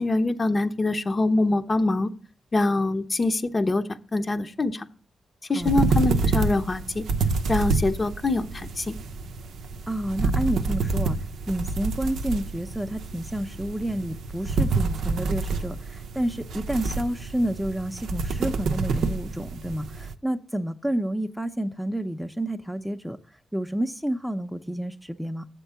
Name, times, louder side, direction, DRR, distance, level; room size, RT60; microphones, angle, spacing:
voice 1, 0.0-2.1 2.5-4.9 5.5-7.0 7.5-9.0, left 2 dB, 40° left, 0.7 m, -24 dB
voice 2, 5.5-5.9 9.9-11.2 11.5-23.2 23.5-25.5, right 1 dB, ahead, 0.6 m, -29 dB
sound 1, 5.6-20.1, right 4 dB, 80° right, 0.5 m, -28 dB
7.2 x 4.5 x 6.9 m
supercardioid pair, 50°, 0 cm